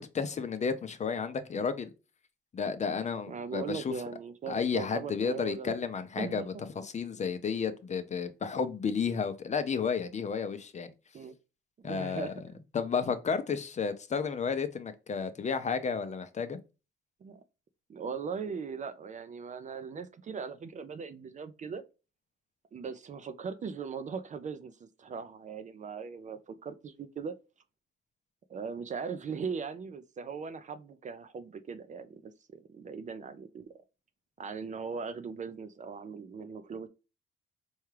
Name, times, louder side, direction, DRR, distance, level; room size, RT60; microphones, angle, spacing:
voice 1, 0.1-1.9 2.5-4.0 4.5-10.9 11.8-12.3 12.7-16.6, left 6 dB, 35° left, 0.6 m, -32 dB
voice 2, 3.3-5.7 6.2-6.5 11.1-11.3 11.8-12.4 17.2-17.4 17.9-21.8 22.7-27.4 28.5-32.2 32.7-33.7 34.4-36.9, right 5 dB, 40° right, 0.4 m, -39 dB
4.5 x 2.3 x 3.1 m
cardioid pair, 90°, 20 cm